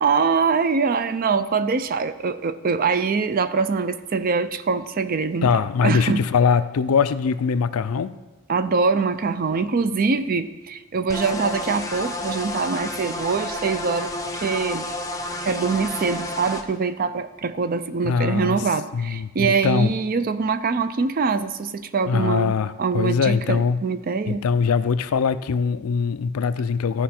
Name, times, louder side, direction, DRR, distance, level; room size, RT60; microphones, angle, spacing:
voice 1, 0.0-6.3 8.5-14.9 15.4-24.4, right 5 dB, 40° right, 11 dB, 0.4 m, -23 dB
voice 2, 5.4-8.2 18.0-18.6 18.9-19.9 22.1-23.8 24.3-27.0, left 6 dB, 80° left, 13 dB, 0.4 m, -22 dB
sound 1, 11.1-16.6, left 1 dB, 15° left, 0.6 m, -30 dB
15.0 x 5.1 x 4.3 m, 1.2 s
head